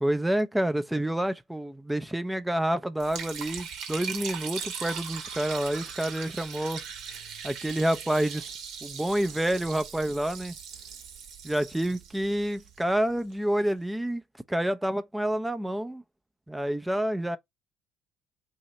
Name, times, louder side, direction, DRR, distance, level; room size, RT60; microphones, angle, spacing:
voice 1, 0.0-6.8 7.4-8.4 8.8-10.6 11.4-14.2 14.5-16.0 16.5-17.4, right 1 dB, 5° right, 0.4 m, -28 dB
Liquid, 3.0-13.2, right 6 dB, 80° right, 1.0 m, -40 dB
3.1 x 2.7 x 3.9 m
supercardioid pair, 90°, 0 cm